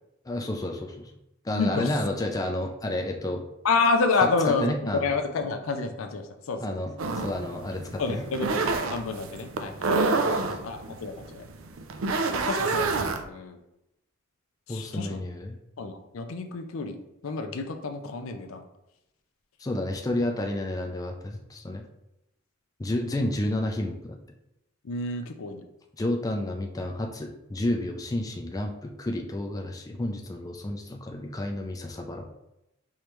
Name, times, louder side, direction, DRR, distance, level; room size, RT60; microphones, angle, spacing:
voice 1, 0.3-1.1 1.4-3.4 4.4-5.0 6.6-8.2 10.2-10.5 14.7-15.6 19.6-21.8 22.8-24.2 26.0-32.3, left 1 dB, 15° left, 3 dB, 0.4 m, -31 dB
voice 2, 1.5-1.9 3.6-6.8 8.0-8.6 8.9-10.1 10.6-11.4 12.5-13.0 13.2-13.6 14.7-15.2 15.8-18.7 23.1-23.3 24.8-25.6, left 4 dB, 75° left, 6 dB, 0.5 m, -29 dB
sound 1, 7.0-13.2, right 3 dB, 70° right, 0.5 m, -28 dB
4.9 x 3.2 x 3.0 m, 0.87 s
head